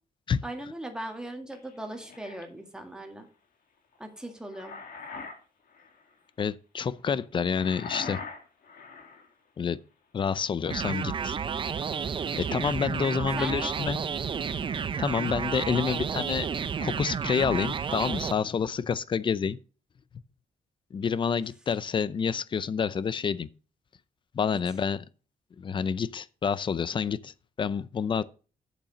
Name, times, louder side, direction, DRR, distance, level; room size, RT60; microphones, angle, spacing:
voice 1, 0.4-3.3 4.0-4.7 13.4-13.7 24.5-24.6 28.2-28.3, right 1 dB, 5° right, 1.8 m, -39 dB
sound 1, 1.5-2.4 4.2-5.4 5.7-6.0 7.5-9.3, left 4 dB, 90° left, 2.2 m, -41 dB
voice 2, 6.4-8.2 9.6-9.8 10.1-11.4 12.4-14.0 15.0-16.5 16.8-19.6 20.9-23.5 24.3-25.0 25.6-28.2, left 6 dB, 35° left, 0.5 m, -28 dB
sound 2, 10.7-18.3, right 6 dB, 35° right, 0.5 m, -31 dB
8.3 x 7.2 x 5.1 m
wide cardioid pair, 165°, 15 cm